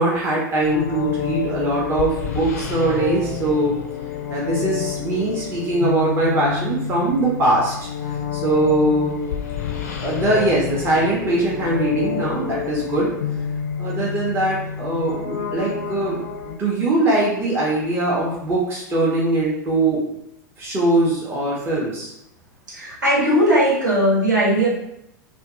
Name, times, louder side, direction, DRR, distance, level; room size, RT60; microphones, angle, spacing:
voice 1, 0.0-3.8 4.3-7.7 8.0-9.2 10.0-13.1 13.8-20.0 20.6-22.1, right 2 dB, 20° right, -5 dB, 0.7 m, -21 dB
sound 1, 0.6-16.5, left 8 dB, 55° left, 0.4 m, -29 dB
voice 2, 22.7-24.7, equal, 70° right, -6 dB, 1.1 m, -18 dB
2.6 x 2.3 x 2.5 m, 0.78 s
figure-of-eight pair, 90°, 10 cm